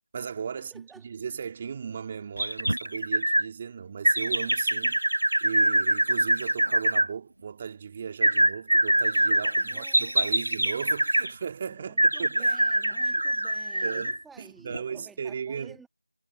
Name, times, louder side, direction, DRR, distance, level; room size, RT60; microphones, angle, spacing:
voice 1, 0.1-5.0 5.4-12.6 13.1-13.2 13.8-15.8, right 6 dB, 20° right, 2.7 m, -36 dB
voice 2, 0.7-1.0 9.4-10.1 11.6-15.9, right 5 dB, ahead, 2.5 m, -53 dB
sound 1, 2.4-3.5 4.0-7.1 8.2-11.3 12.0-14.2 14.7-14.8, right 1 dB, 75° right, 1.8 m, -24 dB
figure-of-eight pair, 170°, 0 cm